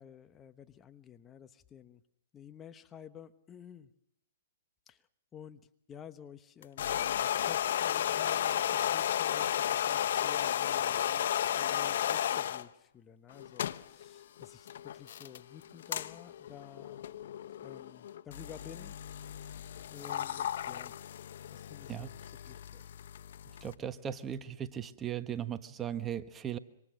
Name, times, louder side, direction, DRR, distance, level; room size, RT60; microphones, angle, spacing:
voice 1, 0.0-2.0 2.3-3.9 4.9-5.1 5.3-5.6 5.9-17.1 17.5-21.0 21.5-22.1 22.4-22.8, left 8 dB, 20° left, 10 dB, 1.1 m, -52 dB
sound 1, 6.6-12.7 13.3-23.7, left 10 dB, 65° left, 1.0 m, -34 dB
voice 2, 23.6-26.6, right 9 dB, 20° right, 10 dB, 1.3 m, -37 dB
27.0 x 25.5 x 6.5 m, 0.76 s
hypercardioid pair, 130°, 0 cm